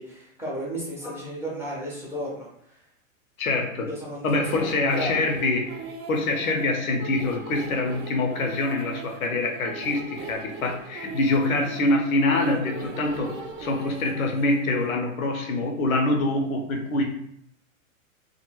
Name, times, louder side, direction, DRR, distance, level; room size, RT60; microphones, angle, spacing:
voice 1, 0.0-2.8 3.9-5.3, equal, 5° right, -6 dB, 0.5 m, -34 dB
voice 2, 3.4-3.9 4.2-5.8 6.1-17.0, left 2 dB, 80° left, 3 dB, 0.7 m, -25 dB
sound 1, 4.4-14.9, right 4 dB, 50° right, 0.6 m, -39 dB
2.3 x 2.0 x 2.9 m, 0.71 s
hypercardioid pair, 115°, 41 cm